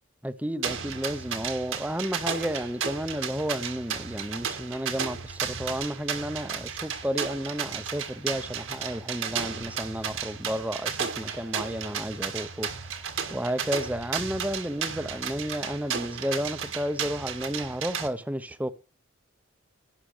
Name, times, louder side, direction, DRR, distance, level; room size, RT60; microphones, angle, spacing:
voice 1, 0.2-13.0 13.3-18.7, equal, 5° right, 0.7 m, -32 dB
sound 1, 0.6-18.1, right 7 dB, 75° right, 1.8 m, -34 dB
11.5 x 6.1 x 6.6 m
head